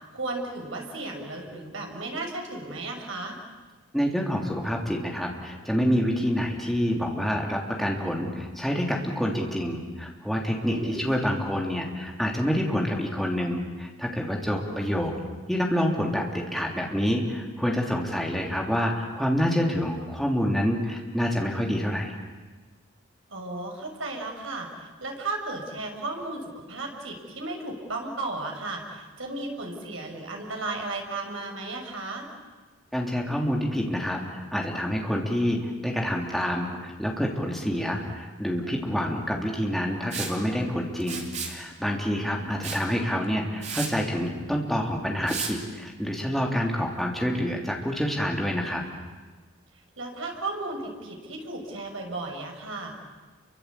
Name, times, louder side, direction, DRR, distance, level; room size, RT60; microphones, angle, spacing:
voice 1, 0.1-3.4 10.7-11.0 14.5-14.9 23.3-32.3 42.1-42.7 46.7-46.9 50.0-53.0, right 2 dB, 75° right, 2 dB, 5.9 m, -35 dB
voice 2, 3.9-15.1 15.5-22.1 32.9-48.8, equal, ahead, -1 dB, 3.4 m, -27 dB
Liquid, 40.1-40.4 41.0-41.6 42.6-42.8 43.2-43.3 43.6-43.9 45.3-45.5, right 5 dB, 35° right, 3.4 m, -33 dB
29.0 x 24.0 x 8.5 m, 1.3 s
head